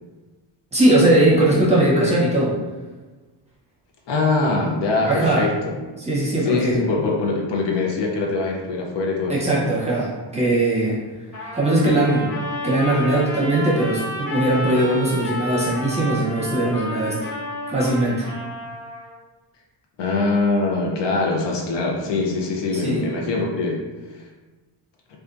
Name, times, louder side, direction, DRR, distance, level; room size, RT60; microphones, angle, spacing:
voice 1, 0.7-2.6 5.1-5.5 6.0-6.7 9.3-11.0 11.5-12.3 12.6-17.2 17.7-18.3 22.7-23.0, right 1 dB, 15° right, -7 dB, 0.6 m, -19 dB
voice 2, 4.1-5.7 6.5-9.7 20.0-23.8 24.1-24.3, left 3 dB, 65° left, 0 dB, 0.5 m, -23 dB
Trumpet, 11.3-19.1, left 1 dB, 40° left, 1.0 m, -31 dB
2.6 x 2.2 x 2.3 m, 1.2 s
cardioid pair, 125°, 47 cm